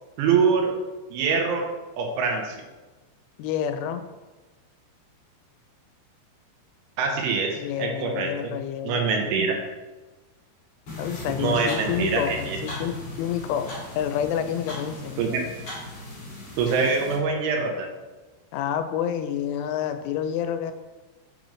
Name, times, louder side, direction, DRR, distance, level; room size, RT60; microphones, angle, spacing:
voice 1, 0.2-0.7 1.1-1.7 2.0-2.6 7.0-8.3 8.8-9.6 11.4-12.6 15.2-15.4 16.6-17.9, right 5 dB, 85° right, 2 dB, 3.3 m, -24 dB
voice 2, 3.4-4.0 7.6-9.4 11.0-15.2 18.5-20.7, left 9 dB, 90° left, 9 dB, 3.1 m, -29 dB
sound 1, 10.9-17.1, left 2 dB, 45° left, 2.6 m, -37 dB
7.5 x 5.3 x 3.2 m, 1.2 s
omnidirectional pair, 5.4 m